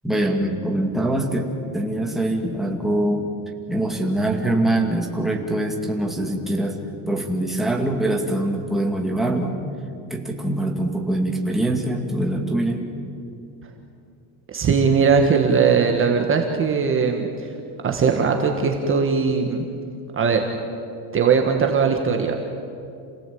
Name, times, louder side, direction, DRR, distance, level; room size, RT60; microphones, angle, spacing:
voice 1, 0.0-3.3 3.7-6.8 7.1-9.6 10.1-12.9, right 1 dB, ahead, 0 dB, 2.2 m, -23 dB
voice 2, 14.5-17.5 17.8-19.6 20.1-20.5 21.1-22.5, right 5 dB, 25° right, 3 dB, 1.6 m, -20 dB
28.0 x 17.5 x 8.6 m, 2.6 s
cardioid pair, 155°, 47 cm